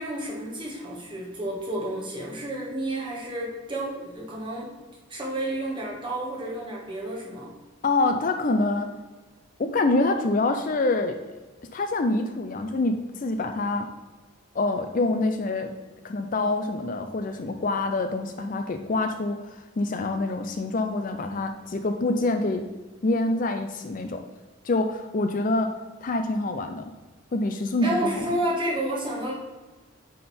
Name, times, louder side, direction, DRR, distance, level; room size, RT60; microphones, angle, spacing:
voice 1, 0.0-4.7 5.1-7.5 27.8-29.3, right 1 dB, 25° right, -3 dB, 1.6 m, -30 dB
voice 2, 7.8-8.9 9.6-11.2 11.7-13.9 14.5-15.7 16.0-22.7 23.0-24.2 24.6-26.8 27.3-28.3, left 2 dB, 40° left, 6 dB, 0.4 m, -26 dB
9.4 x 3.8 x 4.2 m, 1.2 s
head